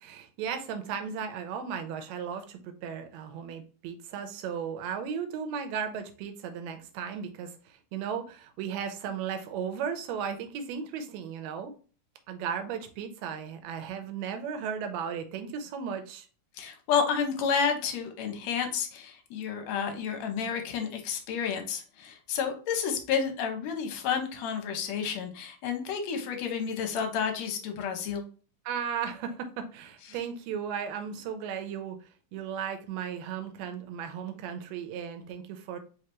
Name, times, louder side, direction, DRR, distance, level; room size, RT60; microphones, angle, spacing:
voice 1, 0.0-11.7 12.3-16.3 28.7-32.0 32.3-35.8, right 7 dB, 75° right, 1.7 m, -35 dB
voice 2, 16.6-28.2, left 6 dB, 70° left, 1.9 m, -30 dB
4.6 x 3.2 x 2.9 m
omnidirectional pair, 3.6 m